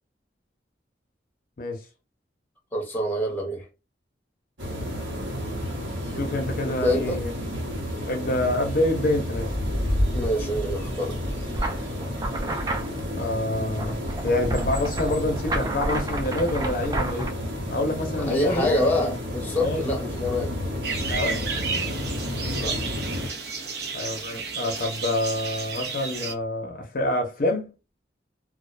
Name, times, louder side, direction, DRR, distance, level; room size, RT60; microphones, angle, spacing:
voice 1, 2.7-3.6 6.7-7.2 10.1-11.2 18.2-20.5 22.5-22.8, left 1 dB, 10° left, 0.7 m, -26 dB
sound 1, 4.6-23.3, left 1 dB, 90° right, 1.1 m, -31 dB
voice 2, 6.1-7.3 8.1-9.5 13.2-14.0 14.2-17.3 17.7-18.8 19.6-19.8 21.1-21.5 23.9-27.7, left 1 dB, 50° left, 0.6 m, -27 dB
sound 2, 11.5-17.3, right 1 dB, 20° right, 0.4 m, -30 dB
sound 3, 20.8-26.3, right 5 dB, 65° right, 0.6 m, -32 dB
2.4 x 2.1 x 2.4 m
head